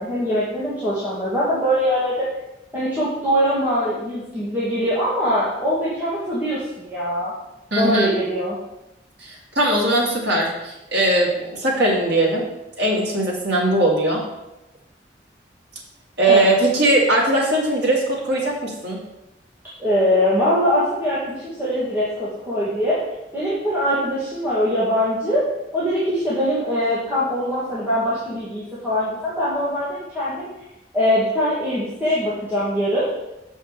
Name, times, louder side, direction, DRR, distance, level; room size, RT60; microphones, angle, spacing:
voice 1, 0.0-2.3 2.7-7.3 7.8-8.6 16.3-16.5 19.8-23.0 23.3-25.5 25.7-30.5 30.9-33.1, equal, 10° right, -11 dB, 2.1 m, -22 dB
voice 2, 7.7-8.1 9.2-12.4 12.8-14.2 16.2-19.0, right 1 dB, 75° right, -4 dB, 2.7 m, -20 dB
6.9 x 5.4 x 6.7 m, 0.93 s
head